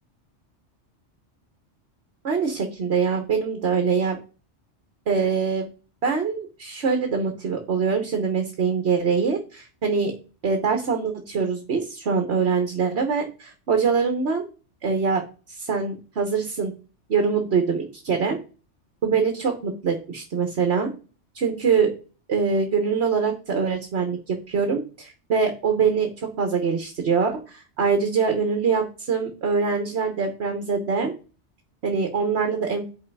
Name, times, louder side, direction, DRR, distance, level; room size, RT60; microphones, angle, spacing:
voice 1, 2.2-4.2 5.1-5.7 6.0-10.1 10.4-14.4 14.8-16.7 17.1-18.4 19.0-20.9 21.3-21.9 22.3-31.1 31.8-32.8, right 5 dB, 65° right, 5 dB, 1.4 m, -24 dB
6.8 x 5.6 x 4.7 m, 0.35 s
omnidirectional pair, 1.2 m